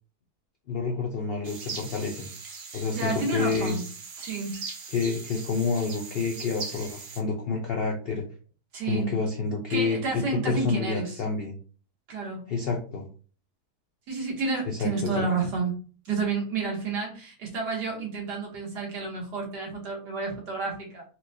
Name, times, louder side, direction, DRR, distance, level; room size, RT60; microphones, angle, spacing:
voice 1, 0.7-2.3 2.7-3.8 4.9-8.2 8.9-11.5 12.5-13.1 14.7-15.2, left 4 dB, 80° left, 1 dB, 0.5 m, -28 dB
sound 1, 1.4-7.2, right 5 dB, 65° right, 1.2 m, -40 dB
voice 2, 2.9-3.8 4.2-4.6 8.7-9.2 9.7-11.2 12.1-12.4 14.1-15.8 16.1-21.0, right 4 dB, 85° right, -1 dB, 1.8 m, -30 dB
4.3 x 2.2 x 2.7 m, 0.38 s
omnidirectional pair, 1.7 m